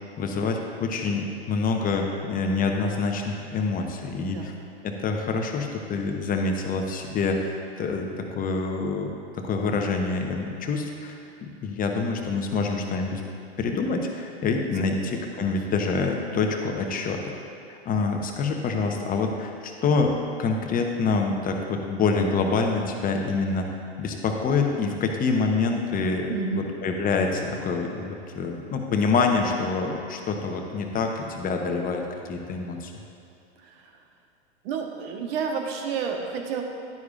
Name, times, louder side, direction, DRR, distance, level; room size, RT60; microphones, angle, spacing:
voice 1, 0.2-4.4 4.8-13.2 13.6-17.3 17.7-23.7 24.0-32.9, left 4 dB, 25° left, 3 dB, 1.0 m, -26 dB
voice 2, 4.2-4.5 14.8-15.0 15.4-15.5 26.3-26.6 33.6-34.0 34.6-36.6, right 6 dB, 60° right, 2 dB, 1.3 m, -31 dB
11.0 x 9.4 x 2.5 m, 2.7 s
hypercardioid pair, 100°, 34 cm